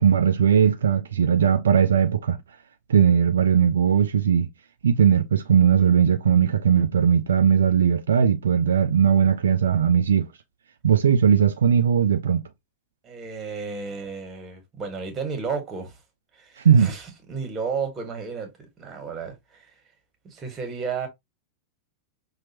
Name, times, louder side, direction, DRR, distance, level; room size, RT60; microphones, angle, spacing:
voice 1, 0.0-2.4 2.9-4.5 4.8-10.3 10.8-12.4 16.6-16.9, right 8 dB, 65° right, 0.4 m, -19 dB
voice 2, 13.0-16.0 16.3-19.7 20.2-21.1, right 5 dB, 25° right, 1.6 m, -33 dB
5.8 x 2.4 x 2.8 m
figure-of-eight pair, 90°, 0 cm